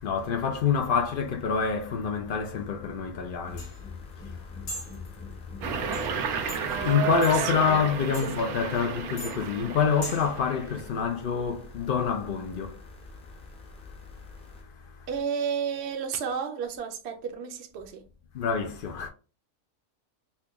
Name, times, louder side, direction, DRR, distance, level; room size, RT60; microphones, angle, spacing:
voice 1, 0.0-15.1 18.3-19.1, left 6 dB, 85° left, 0.4 m, -28 dB
sound 1, 3.2-10.4, left 1 dB, 65° left, 1.6 m, -43 dB
sound 2, 3.4-14.6, left 4 dB, 10° left, 0.3 m, -47 dB
sound 3, 5.6-10.8, right 7 dB, 90° right, 1.1 m, -32 dB
voice 2, 7.3-7.9 8.2-8.3 15.1-18.0, right 6 dB, 65° right, 0.7 m, -32 dB
4.3 x 2.2 x 3.0 m
omnidirectional pair, 1.5 m